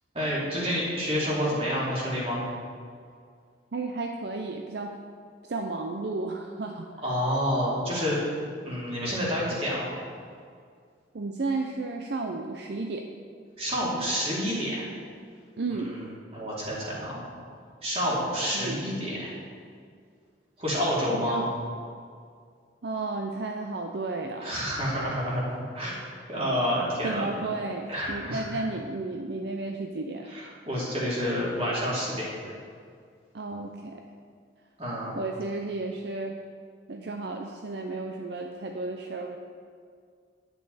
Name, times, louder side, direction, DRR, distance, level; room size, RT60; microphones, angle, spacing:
voice 1, 0.1-2.4 7.0-8.2 8.6-9.9 13.6-14.8 15.7-15.9 16.3-17.3 17.8-19.3 20.6-21.5 24.4-25.9 26.3-27.4 27.9-28.6 30.3-32.5 34.8-35.1, equal, 30° right, -6 dB, 3.0 m, -29 dB
voice 2, 3.7-4.9 5.5-6.9 11.1-13.1 15.6-16.1 18.5-18.8 21.1-21.5 22.8-24.7 27.0-30.3 33.3-34.0 35.1-36.3 36.9-39.4, right 3 dB, 60° right, 3 dB, 0.5 m, -33 dB
10.5 x 8.9 x 4.1 m, 2.1 s
head